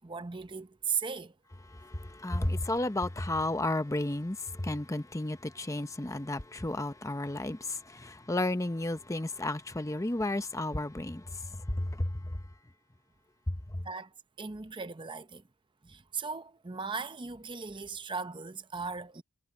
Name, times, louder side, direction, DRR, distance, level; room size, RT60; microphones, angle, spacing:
voice 1, 0.0-1.3 13.8-14.1 14.4-15.4 15.8-19.2, right 5 dB, 20° right, 0.7 m, -37 dB
voice 2, 1.7-12.4 13.5-13.8, left 1 dB, 15° left, 0.7 m, -33 dB
head